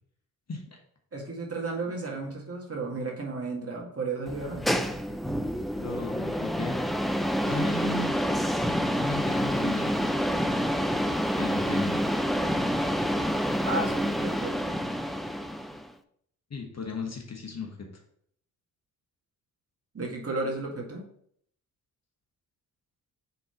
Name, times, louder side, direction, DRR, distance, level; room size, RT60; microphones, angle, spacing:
voice 1, 1.1-4.7 13.6-14.6 19.9-21.0, right 3 dB, 30° right, -1 dB, 1.9 m, -33 dB
sound 1, 4.3-15.9, equal, ahead, 0.3 m, -28 dB
voice 2, 5.7-6.8 7.4-8.1 9.0-10.1 11.3-12.0 16.5-17.7, left 3 dB, 35° left, 2 dB, 1.4 m, -35 dB
4.6 x 4.0 x 5.7 m, 0.66 s
hypercardioid pair, 40°, 47 cm